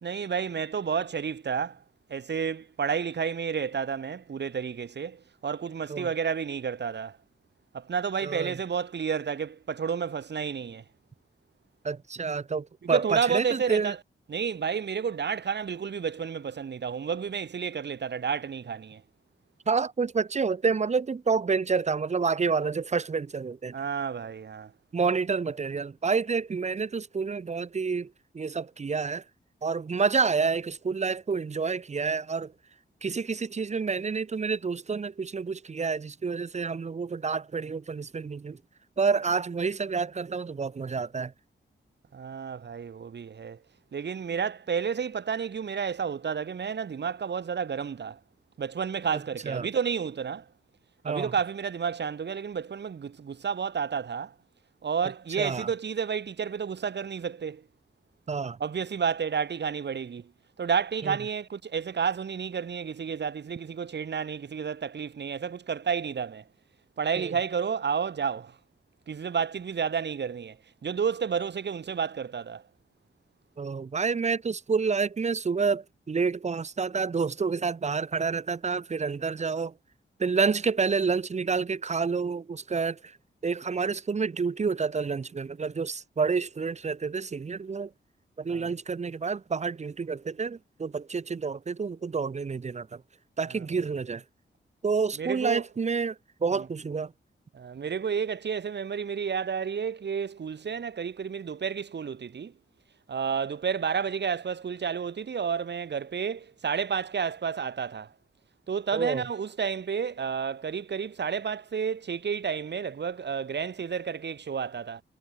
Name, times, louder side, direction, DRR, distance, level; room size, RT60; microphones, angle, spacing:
voice 1, 0.0-1.8 2.1-7.2 7.7-10.8 12.8-14.0 14.3-19.0 23.7-24.7 42.1-43.6 43.9-48.2 48.6-50.5 51.0-54.3 54.8-57.6 58.6-60.3 60.6-66.4 67.0-68.6 69.1-70.6 70.8-72.6 88.5-88.7 93.8-93.9 95.2-95.6 96.5-96.7 97.5-102.5 103.1-108.1 108.7-115.0, right 6 dB, 60° right, 4.6 m, -31 dB
voice 2, 8.2-8.6 11.8-13.9 19.7-23.7 24.9-29.2 29.6-32.5 33.0-38.6 39.0-41.3 49.1-49.7 51.0-51.3 55.4-55.7 58.3-58.6 61.0-61.2 67.2-67.3 73.6-79.7 80.2-83.2 83.4-87.9 88.4-93.0 93.4-94.2 94.8-97.1 108.9-109.3, right 5 dB, 35° right, 1.1 m, -29 dB
wide cardioid pair, 155°, 20 cm